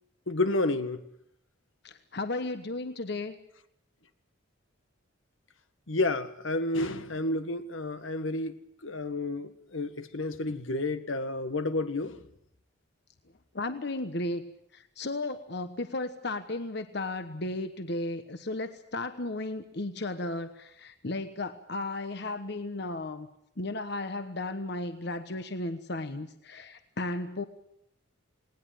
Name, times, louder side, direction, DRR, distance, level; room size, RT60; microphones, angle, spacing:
voice 1, 0.3-1.0 5.9-12.2, left 2 dB, 85° left, 10 dB, 1.7 m, -30 dB
voice 2, 1.8-3.4 13.5-14.4 14.7-23.3 23.6-27.4, left 2 dB, 55° left, 9 dB, 1.2 m, -34 dB
19.5 x 19.0 x 9.3 m, 0.74 s
head